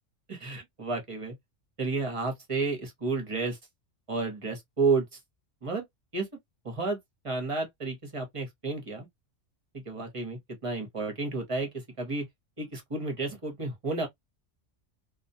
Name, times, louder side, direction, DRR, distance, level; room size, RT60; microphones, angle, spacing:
voice 1, 0.3-1.3 1.8-3.6 4.1-5.2 5.6-5.8 6.1-6.3 6.6-7.0 7.2-9.1 9.7-12.3 12.6-14.1, right 3 dB, 30° right, 0.8 m, -31 dB
2.3 x 2.1 x 2.6 m
omnidirectional pair, 1.2 m